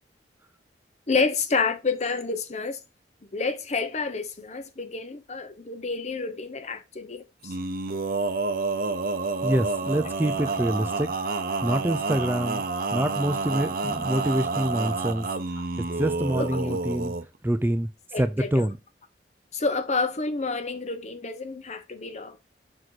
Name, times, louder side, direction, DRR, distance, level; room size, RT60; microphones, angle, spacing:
voice 1, 1.1-2.8 3.3-7.5 16.4-16.8 18.1-18.7 19.5-22.4, left 4 dB, 40° left, 0.8 m, -29 dB
Male singing, 7.4-17.2, right 3 dB, 55° right, 0.7 m, -29 dB
voice 2, 9.4-11.1 11.6-12.6 12.9-15.3 16.0-17.1 17.4-17.9 18.2-18.8, right 1 dB, 10° right, 0.4 m, -26 dB
6.3 x 4.1 x 4.5 m
head